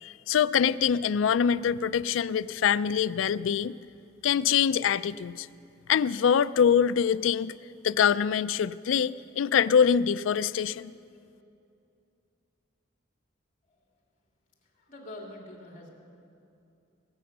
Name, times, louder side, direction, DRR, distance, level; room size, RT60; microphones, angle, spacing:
voice 1, 0.0-3.7 4.2-5.5 5.9-7.5 7.8-10.9, left 7 dB, 70° left, 16 dB, 0.4 m, -24 dB
voice 2, 14.6-15.9, left 1 dB, 45° left, 0 dB, 2.9 m, -45 dB
21.5 x 8.7 x 6.7 m, 2.6 s
head